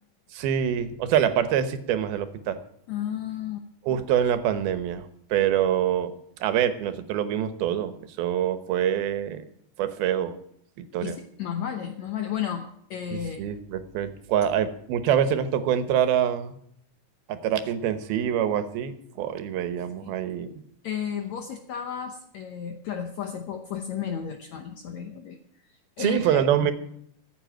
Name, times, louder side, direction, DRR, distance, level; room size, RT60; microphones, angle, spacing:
voice 1, 0.3-2.6 3.9-5.0 5.3-6.1 6.4-9.4 9.8-10.4 10.8-11.2 13.1-16.6 17.3-20.6 26.0-26.7, right 9 dB, 80° right, 11 dB, 2.9 m, -25 dB
voice 2, 2.9-3.6 11.0-13.5 20.0-20.2 20.8-25.4 26.0-26.7, left 8 dB, 75° left, 6 dB, 1.7 m, -33 dB
14.5 x 7.9 x 9.0 m, 0.69 s
omnidirectional pair, 4.4 m